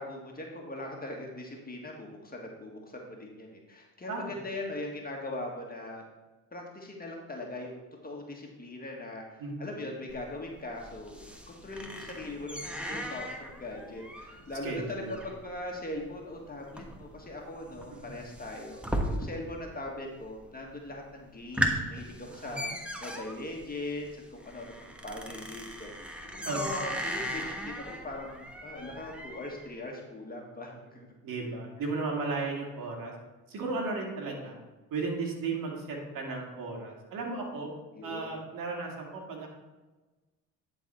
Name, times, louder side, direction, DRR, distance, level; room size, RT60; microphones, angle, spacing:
voice 1, 0.0-6.0 6.5-18.8 19.1-22.7 23.0-25.9 26.3-31.1 37.9-38.3, left 2 dB, 25° left, 0 dB, 1.8 m, -40 dB
voice 2, 9.4-9.8 14.6-15.1 17.9-18.3 22.3-22.8 26.5-26.7 31.2-33.1 33.5-34.6 34.9-37.7 38.0-39.5, right 3 dB, 70° right, 0 dB, 2.1 m, -35 dB
sound 1, 10.1-19.7 19.9-20.5 20.9-21.0 21.3-29.7, equal, 5° right, 1.2 m, -37 dB
10.5 x 4.2 x 4.3 m, 1.2 s
supercardioid pair, 60°, 35 cm